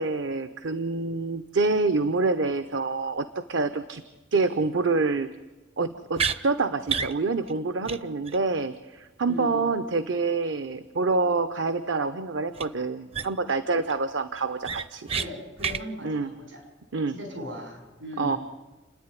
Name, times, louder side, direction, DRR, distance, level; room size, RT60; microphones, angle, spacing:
voice 1, 0.0-4.0 4.3-5.3 5.8-15.1 16.0-16.3 16.9-17.2 18.2-18.4, right 3 dB, 70° right, 11 dB, 0.8 m, -27 dB
sound 1, 6.1-6.4 6.9-7.1 7.5-7.6 7.9-8.0 8.3-8.4 12.5-12.7 13.1-13.5 13.9-14.0 14.3-15.3 15.6-15.8, right 6 dB, 30° right, 0.6 m, -29 dB
voice 2, 9.2-9.6 15.1-16.6 17.1-18.4, left 1 dB, 85° right, 3 dB, 6.5 m, -38 dB
29.0 x 9.8 x 9.8 m, 1.2 s
head